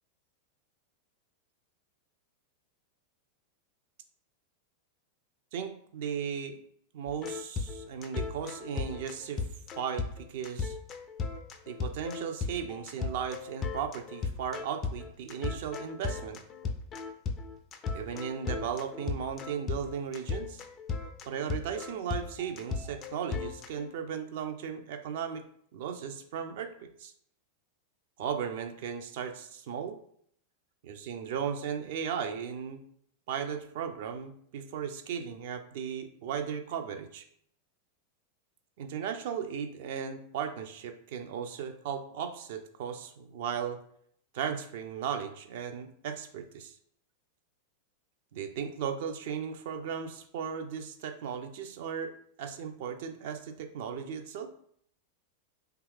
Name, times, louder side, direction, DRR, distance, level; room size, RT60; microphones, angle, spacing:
voice 1, 5.5-6.6 6.9-9.4 9.8-10.8 11.7-16.4 17.9-20.6 21.3-25.4 25.7-27.1 28.2-30.0 30.8-32.8 33.3-37.3 38.8-43.8 44.3-46.8 48.3-52.1 52.4-54.5, right 7 dB, 50° right, 7 dB, 0.3 m, -36 dB
sound 1, 7.1-23.9, left 4 dB, 30° left, 0.3 m, -36 dB
2.7 x 2.3 x 3.3 m, 0.64 s
figure-of-eight pair, 90°, 0 cm